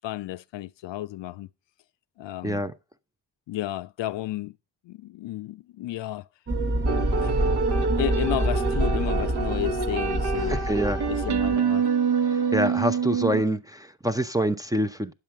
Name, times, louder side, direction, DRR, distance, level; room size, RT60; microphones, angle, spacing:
voice 1, 0.0-1.5 2.2-2.6 3.5-4.5 4.8-6.3 7.1-7.4 8.0-10.6 11.1-11.9, left 14 dB, 70° left, 0.5 m, -32 dB
voice 2, 2.4-2.7 10.5-11.0 12.2-15.1, right 1 dB, 10° right, 0.5 m, -26 dB
sound 1, 6.5-11.6, right 1 dB, 25° right, 1.0 m, -27 dB
sound 2, 6.9-13.4, right 5 dB, 60° right, 1.0 m, -26 dB
9.5 x 7.4 x 4.6 m
cardioid pair, 100°, 46 cm